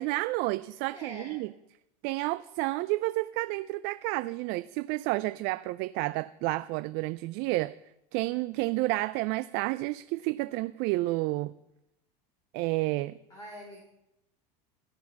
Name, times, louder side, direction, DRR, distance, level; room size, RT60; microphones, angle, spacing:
voice 1, 0.0-1.5 2.0-7.7 8.1-11.5 12.5-13.2, right 20 dB, 55° right, 15 dB, 0.4 m, -30 dB
voice 2, 0.9-1.4 13.3-13.8, equal, 20° left, -2 dB, 4.1 m, -45 dB
14.0 x 6.3 x 5.8 m, 0.86 s
hypercardioid pair, 90°, 21 cm